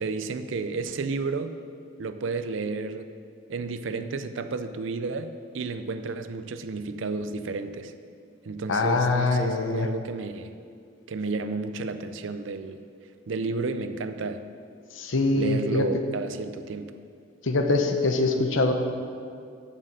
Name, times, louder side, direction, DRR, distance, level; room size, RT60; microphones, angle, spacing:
voice 1, 0.0-1.5 2.0-3.1 3.5-5.3 5.5-7.9 8.5-10.5 11.1-12.8 13.3-14.4 15.3-16.9, right 3 dB, 75° right, 10 dB, 0.5 m, -32 dB
voice 2, 8.7-9.9 15.0-15.9 17.4-18.7, left 3 dB, 80° left, 5 dB, 0.8 m, -23 dB
7.6 x 6.5 x 6.5 m, 2.3 s
head